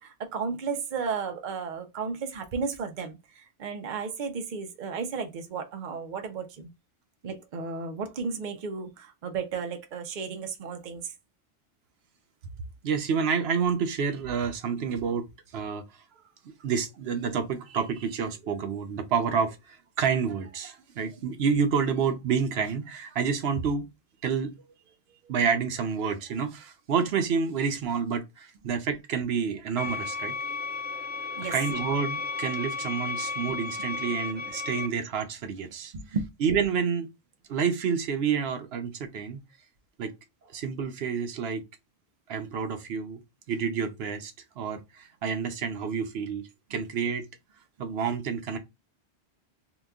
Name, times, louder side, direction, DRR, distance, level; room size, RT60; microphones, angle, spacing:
voice 1, 0.0-6.7 7.2-11.1 31.3-31.5 33.5-33.6 35.9-36.3, right 5 dB, 55° right, 0.7 m, -34 dB
voice 2, 12.8-15.2 15.5-15.8 16.6-23.8 24.2-24.5 25.3-30.3 31.5-35.9 36.4-37.1 37.5-39.4 40.0-40.1 40.5-41.6 42.3-43.2 43.5-47.3 47.8-48.6, right 6 dB, 80° right, 0.8 m, -29 dB
sound 1, 29.8-34.9, left 4 dB, 15° right, 0.4 m, -33 dB
2.9 x 2.2 x 3.5 m
omnidirectional pair, 1.1 m